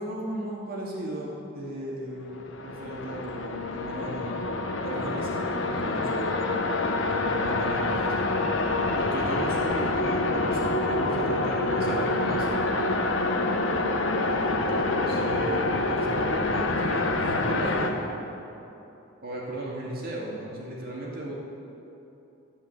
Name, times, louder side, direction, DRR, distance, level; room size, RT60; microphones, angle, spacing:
voice 1, 0.0-4.3 4.8-8.2 9.0-12.5 14.3-17.9 19.2-21.4, right 1 dB, 45° right, -4 dB, 2.4 m, -35 dB
sound 1, 2.3-17.9, left 2 dB, 70° left, 0.9 m, -27 dB
14.0 x 5.7 x 8.4 m, 2.9 s
head